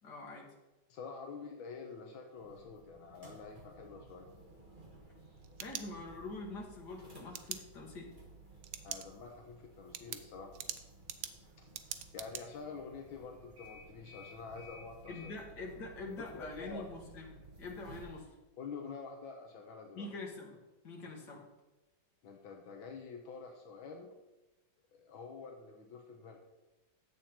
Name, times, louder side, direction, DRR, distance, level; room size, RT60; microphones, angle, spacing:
voice 1, 0.0-0.5 5.6-8.1 15.1-18.3 20.0-21.5, left 2 dB, 55° left, -1 dB, 2.3 m, -45 dB
voice 2, 0.9-4.3 8.8-10.6 12.1-15.4 16.2-16.8 18.6-20.1 22.2-24.1 24.9-26.4, left 5 dB, 85° left, 2 dB, 1.7 m, -47 dB
sound 1, 2.3-18.2, right 2 dB, 25° right, 1.7 m, -56 dB
sound 2, 5.2-6.4 7.3-7.6 8.6-9.1 9.4-9.5 9.9-12.4, right 11 dB, 85° right, 1.5 m, -43 dB
10.5 x 7.6 x 4.3 m, 1.1 s
omnidirectional pair, 2.1 m